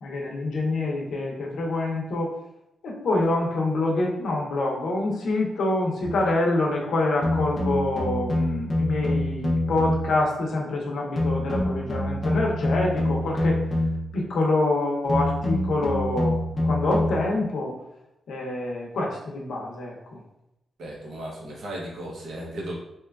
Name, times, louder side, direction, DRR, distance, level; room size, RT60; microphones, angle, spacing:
voice 1, 0.0-2.3 2.8-13.6 14.1-16.4 16.6-17.7 18.3-20.2, left 2 dB, 75° left, -2 dB, 0.6 m, -26 dB
sound 1, 6.0-6.3 7.2-10.2 11.2-14.1 15.1-17.3, left 1 dB, 25° left, 0.4 m, -26 dB
voice 2, 20.8-22.8, right 1 dB, 75° right, -3 dB, 0.7 m, -35 dB
2.8 x 2.2 x 2.3 m, 0.89 s
wide cardioid pair, 175°, 0 cm